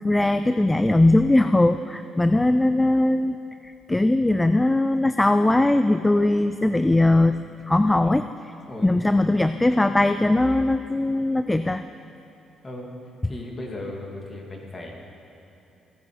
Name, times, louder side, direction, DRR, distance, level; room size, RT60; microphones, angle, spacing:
voice 1, 0.0-3.4 3.9-7.3 7.7-8.3 8.8-11.8, left 2 dB, 10° left, 10 dB, 0.4 m, -20 dB
voice 2, 8.7-9.2 12.6-12.9 13.2-14.9, left 1 dB, 30° left, -1 dB, 2.4 m, -37 dB
16.0 x 9.6 x 4.9 m, 3.0 s
cardioid pair, 90°, 0 cm